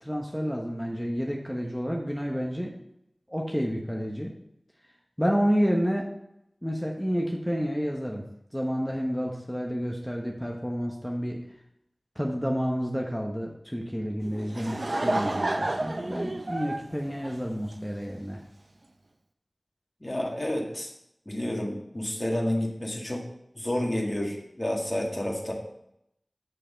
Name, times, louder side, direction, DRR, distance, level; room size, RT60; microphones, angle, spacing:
voice 1, 0.0-2.7 3.3-4.3 5.2-6.1 6.6-8.2 8.5-11.4 12.2-18.4, equal, ahead, -1 dB, 1.1 m, -29 dB
Laughter / Crowd, 14.2-18.0, right 2 dB, 55° right, 0.6 m, -30 dB
voice 2, 20.0-20.9 21.3-23.2 23.6-25.5, left 1 dB, 35° left, 0 dB, 1.9 m, -30 dB
6.7 x 6.5 x 5.1 m, 0.79 s
wide cardioid pair, 45°, 0 cm